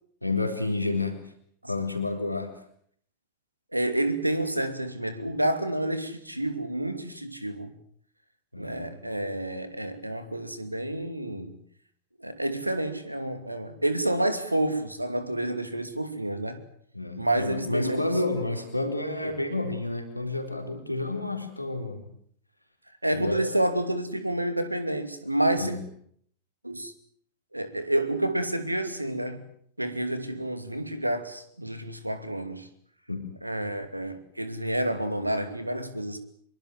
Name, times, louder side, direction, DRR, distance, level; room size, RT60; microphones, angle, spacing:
voice 1, 0.2-1.2 1.7-2.5 8.5-9.0 16.9-22.1 23.1-23.5 25.5-25.8 33.1-33.4, left 2 dB, 90° left, 4.0 m, -30 dB
voice 2, 3.7-7.7 8.6-11.6 12.2-16.6 17.2-18.2 19.2-19.3 23.0-25.8 26.6-26.9 27.5-29.4 29.8-32.7 33.4-36.2, right 1 dB, 85° right, 2.7 m, -29 dB
25.0 x 23.5 x 7.7 m
figure-of-eight pair, 90°, 0 cm